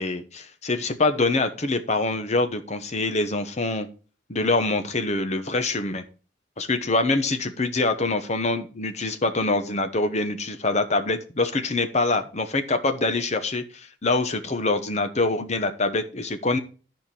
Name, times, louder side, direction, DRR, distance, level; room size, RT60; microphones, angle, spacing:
voice 1, 0.0-3.9 4.3-6.0 6.6-16.6, left 2 dB, 35° left, 8 dB, 1.0 m, -25 dB
10.0 x 5.2 x 5.9 m, 0.37 s
head